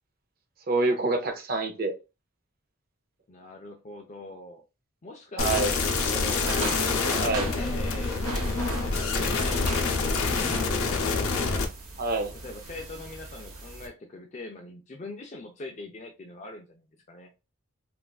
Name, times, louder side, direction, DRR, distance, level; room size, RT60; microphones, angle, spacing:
voice 1, 0.7-1.9 5.4-5.7 7.2-7.5 12.0-12.3, right 3 dB, 45° right, 6 dB, 0.5 m, -26 dB
voice 2, 3.3-4.6 5.0-6.5 7.0-9.8 10.1-11.2 12.2-17.3, left 2 dB, 35° left, 3 dB, 0.4 m, -43 dB
sound 1, 5.4-11.6, left 4 dB, 80° left, 0.6 m, -26 dB
sound 2, 5.8-13.9, right 3 dB, 90° right, 0.9 m, -39 dB
3.2 x 2.5 x 2.3 m, 0.28 s
head